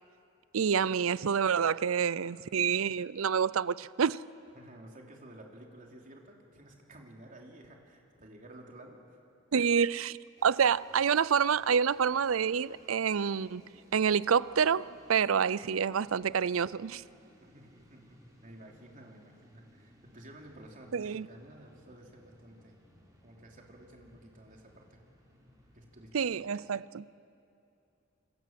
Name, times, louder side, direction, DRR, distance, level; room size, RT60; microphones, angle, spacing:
voice 1, 0.5-4.2 9.5-10.2 10.4-13.6 13.9-17.0 20.9-21.3 26.1-27.1, right 7 dB, 85° right, 0.5 m, -28 dB
voice 2, 4.5-9.2 17.3-22.8 23.2-25.0 25.7-26.4, right 1 dB, 40° right, 3.5 m, -53 dB
sound 1, 10.4-26.4, equal, 20° right, 4.7 m, -61 dB
26.5 x 25.5 x 7.6 m
head